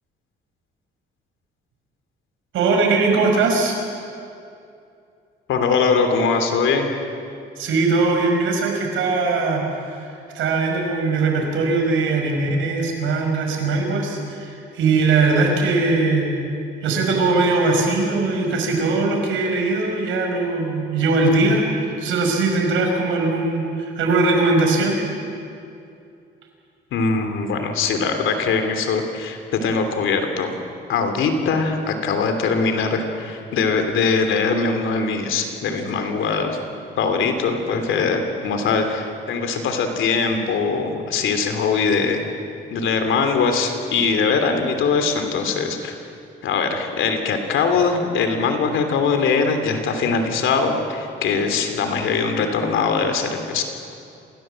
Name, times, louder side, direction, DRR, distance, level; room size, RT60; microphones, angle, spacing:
voice 1, 2.5-3.8 7.6-9.7 9.9-10.1 10.3-16.3 16.8-21.6 22.0-25.0, right 3 dB, 85° right, 2 dB, 5.3 m, -20 dB
voice 2, 5.5-6.9 26.9-30.6 30.9-36.6 37.0-42.2 42.7-46.0 46.4-53.6, left 5 dB, 80° left, 6 dB, 3.1 m, -21 dB
27.0 x 17.0 x 7.7 m, 2.5 s
cardioid pair, 90°, 20 cm